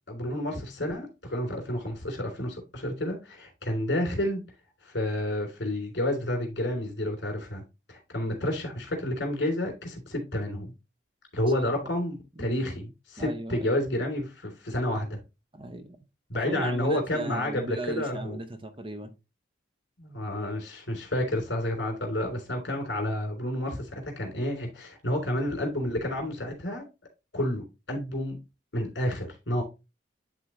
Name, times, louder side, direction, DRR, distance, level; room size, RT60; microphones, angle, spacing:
voice 1, 0.1-4.4 4.8-7.6 7.9-10.7 11.3-15.2 16.3-18.4 20.0-26.8 27.3-28.4 28.7-29.6, left 1 dB, 65° left, 3.2 m, -30 dB
voice 2, 11.6-11.9 12.4-12.7 13.2-13.7 15.5-16.0 16.3-19.2, right 2 dB, 25° right, 0.7 m, -37 dB
11.0 x 3.8 x 3.1 m
head